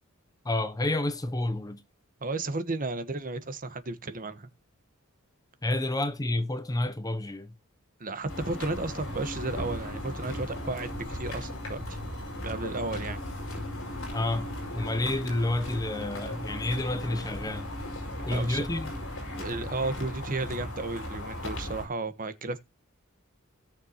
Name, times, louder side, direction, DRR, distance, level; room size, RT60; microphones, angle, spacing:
voice 1, 0.4-1.8 5.6-7.5 14.1-14.5 14.7-17.7 18.2-18.9, left 2 dB, 15° left, 0.6 m, -29 dB
voice 2, 2.2-4.5 8.0-12.0 12.4-13.2 18.3-18.7 19.4-22.6, right 3 dB, 40° right, 1.2 m, -33 dB
sound 1, 8.3-21.9, left 1 dB, 65° left, 5.5 m, -37 dB
17.0 x 6.8 x 3.0 m
head